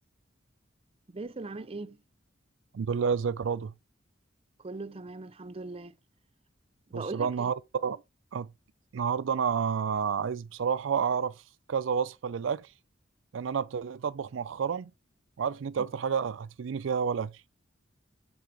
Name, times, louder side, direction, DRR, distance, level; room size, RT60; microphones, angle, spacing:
voice 1, 1.1-2.0 4.6-5.9 6.9-7.5, right 3 dB, 30° right, 0.6 m, -39 dB
voice 2, 2.7-3.7 6.9-8.0 8.3-8.5 8.9-11.4 11.7-12.7 13.3-14.9 15.4-17.4, right 6 dB, 75° right, 0.4 m, -30 dB
6.8 x 6.8 x 4.8 m
head